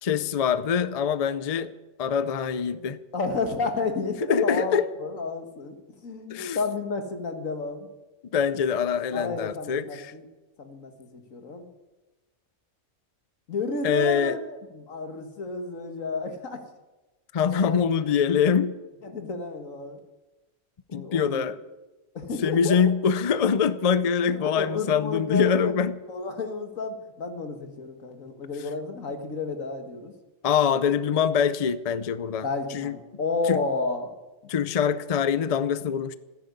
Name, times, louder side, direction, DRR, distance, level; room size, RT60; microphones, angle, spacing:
voice 1, 0.0-1.7 2.0-3.0 4.3-4.9 6.3-6.6 8.3-10.1 13.8-14.4 17.3-18.8 20.9-21.6 22.4-26.0 30.4-32.5 32.7-33.0 33.5-33.6 34.5-36.1, left 7 dB, 40° left, 14 dB, 0.5 m, -24 dB
voice 2, 3.1-5.8 6.0-7.9 9.1-10.2 10.6-11.7 13.5-16.6 17.4-17.8 19.0-20.0 20.9-21.4 22.1-22.8 24.3-25.7 26.1-30.1 32.4-34.1, left 3 dB, 85° left, 5 dB, 2.1 m, -31 dB
14.5 x 10.5 x 8.4 m, 1.1 s
omnidirectional pair, 1.3 m